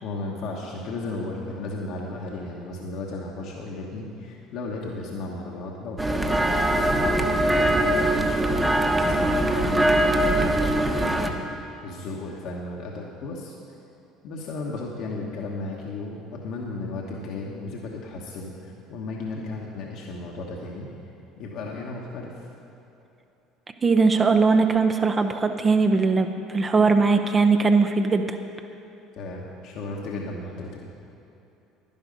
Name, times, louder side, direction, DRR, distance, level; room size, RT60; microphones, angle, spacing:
voice 1, 0.0-8.7 9.0-13.5 14.2-20.9 21.4-22.5 29.1-30.9, left 2 dB, 65° left, -1 dB, 1.3 m, -35 dB
sound 1, 6.0-11.3, right 1 dB, 15° right, 1.1 m, -22 dB
voice 2, 23.8-28.4, right 4 dB, 30° right, 6 dB, 0.7 m, -20 dB
11.0 x 10.5 x 5.3 m, 2.9 s
hypercardioid pair, 70°, 0 cm